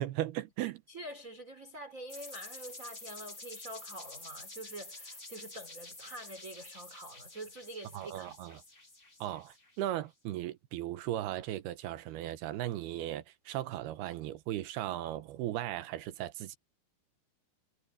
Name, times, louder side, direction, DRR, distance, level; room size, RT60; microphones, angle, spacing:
voice 1, 0.0-0.8 7.9-8.6 9.2-16.6, right 13 dB, 75° right, 2.9 m, -37 dB
voice 2, 0.9-8.6, right 1 dB, 20° right, 5.0 m, -46 dB
sound 1, 2.1-9.9, left 2 dB, 15° left, 2.3 m, -49 dB
omnidirectional pair, 4.8 m